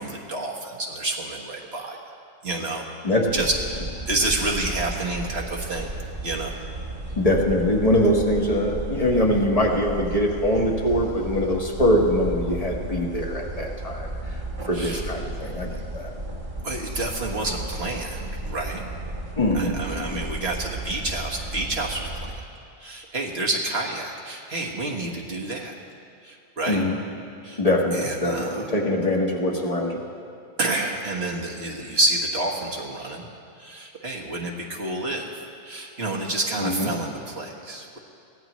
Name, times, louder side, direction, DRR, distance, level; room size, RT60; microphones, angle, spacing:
voice 1, 0.0-2.0 2.4-2.9 3.3-5.9 6.2-6.5 14.7-15.0 16.6-18.9 19.5-22.0 22.3-22.4 22.8-25.7 26.2-26.8 27.4-27.6 27.9-28.7 30.6-33.3 33.6-35.3 35.6-38.0, right 2 dB, 60° right, -2 dB, 1.7 m, -29 dB
voice 2, 3.0-3.4 7.2-14.1 14.7-16.1 19.4-20.2 26.7-27.0 27.6-30.0 36.6-36.9, left 1 dB, 30° left, 0 dB, 1.6 m, -23 dB
sound 1, 3.3-22.5, right 1 dB, 45° right, 1.4 m, -34 dB
22.0 x 16.5 x 3.1 m, 2.5 s
omnidirectional pair, 1.2 m